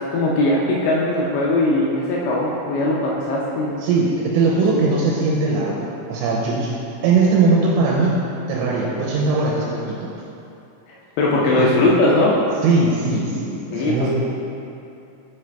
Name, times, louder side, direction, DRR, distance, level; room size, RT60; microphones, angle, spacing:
voice 1, 0.1-3.7 4.7-4.9 11.2-12.4 13.7-14.0, left 2 dB, 80° left, -4 dB, 2.6 m, -19 dB
voice 2, 3.8-6.7 7.0-8.2 8.5-10.1 11.6-11.7 12.6-14.1, right 3 dB, 85° right, -3 dB, 3.0 m, -20 dB
5.9 x 5.5 x 3.2 m, 2.7 s
omnidirectional pair, 5.5 m